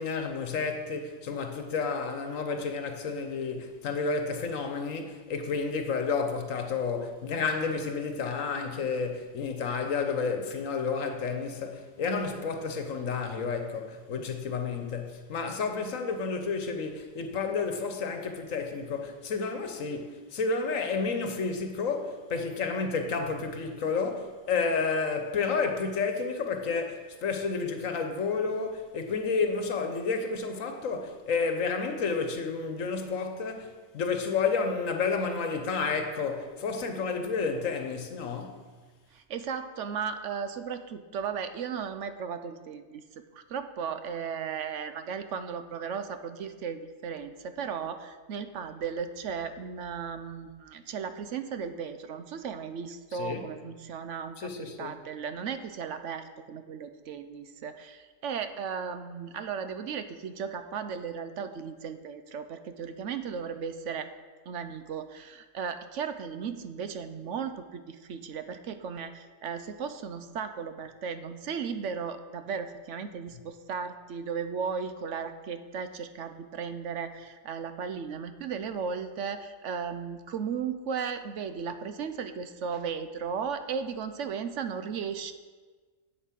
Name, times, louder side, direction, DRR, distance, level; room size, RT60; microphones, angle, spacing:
voice 1, 0.0-38.6 53.1-53.5 54.4-54.9, left 4 dB, 80° left, 1.3 m, -31 dB
voice 2, 39.1-43.0 43.3-64.1 64.5-85.3, right 6 dB, 70° right, 1.0 m, -36 dB
8.2 x 8.1 x 5.9 m
omnidirectional pair, 1.4 m